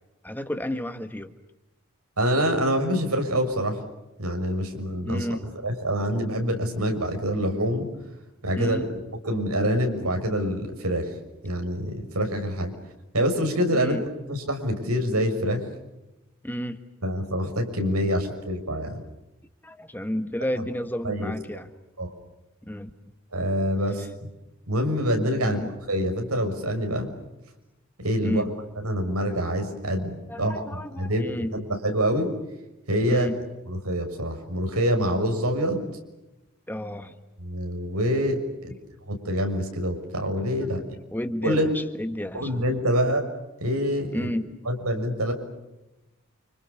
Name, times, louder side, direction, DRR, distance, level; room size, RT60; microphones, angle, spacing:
voice 1, 0.2-1.3 5.1-5.5 8.6-8.9 13.8-14.0 16.4-16.8 19.6-21.7 22.7-22.9 25.4-25.7 28.2-28.5 30.3-31.5 33.1-33.4 36.7-37.1 38.7-38.8 41.1-42.5 44.1-44.5, equal, 10° left, 8 dB, 1.5 m, -31 dB
voice 2, 2.2-3.8 4.2-7.9 8.4-8.8 9.2-11.1 11.4-12.7 13.1-13.9 14.3-15.6 17.0-19.0 20.6-20.7 21.0-21.3 22.0-22.1 23.3-24.1 24.7-25.6 25.9-27.1 28.0-28.4 28.8-32.3 32.9-33.3 33.7-35.8 37.4-38.7 39.1-40.8 41.4-41.7 42.3-43.2 43.6-44.3 44.6-45.3, equal, 85° right, 5 dB, 6.5 m, -26 dB
30.0 x 27.5 x 7.0 m, 0.97 s
head